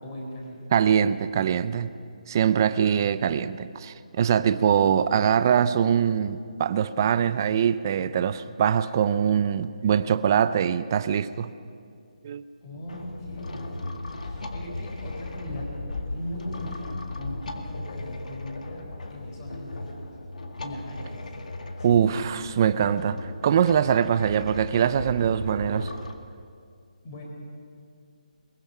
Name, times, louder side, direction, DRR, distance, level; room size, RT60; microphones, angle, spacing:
voice 1, 0.0-0.6 12.6-15.7 16.1-18.8 19.1-20.1 20.6-21.1 21.7-22.0 27.0-27.2, left 1 dB, 25° left, 4.4 m, -39 dB
voice 2, 0.7-1.9 2.3-11.5 12.2-12.4 21.8-25.9, right 8 dB, 25° right, 0.5 m, -23 dB
sound 1, 12.9-26.1, left 2 dB, 65° left, 1.9 m, -37 dB
22.0 x 20.5 x 5.9 m
hypercardioid pair, 170°, 4 cm